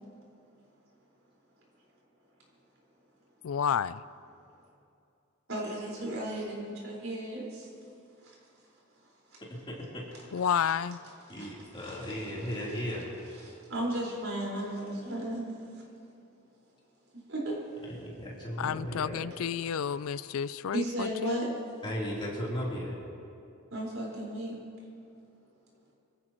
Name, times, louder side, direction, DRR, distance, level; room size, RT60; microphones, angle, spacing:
voice 1, 3.4-4.0 10.3-11.0 18.6-21.5, left 7 dB, 85° left, 17 dB, 0.4 m, -31 dB
voice 2, 5.5-7.7 8.2-8.3 9.3-9.4 11.4-12.6 13.4-15.5 17.3-17.6 20.7-21.5 23.7-24.6, right 1 dB, 75° right, -4 dB, 4.8 m, -35 dB
voice 3, 9.7-10.1 11.3-13.1 17.8-19.2 21.8-23.0, equal, 25° left, -5 dB, 3.5 m, -36 dB
25.5 x 15.5 x 3.1 m, 2.6 s
head